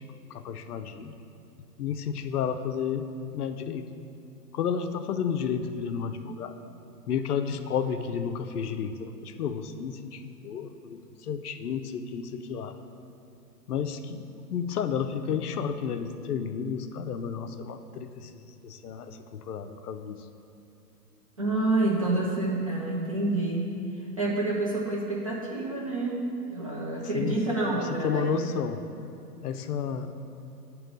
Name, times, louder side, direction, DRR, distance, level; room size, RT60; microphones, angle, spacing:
voice 1, 0.3-1.1 1.8-3.1 3.3-3.9 4.5-6.6 7.1-12.8 13.7-20.3 27.1-27.4 27.8-28.8 29.4-30.2, left 7 dB, 65° left, 8 dB, 0.6 m, -32 dB
voice 2, 21.4-23.7 24.2-26.2 26.5-28.6, right 2 dB, 25° right, -5 dB, 0.4 m, -28 dB
7.6 x 3.0 x 6.2 m, 2.7 s
hypercardioid pair, 130°, 49 cm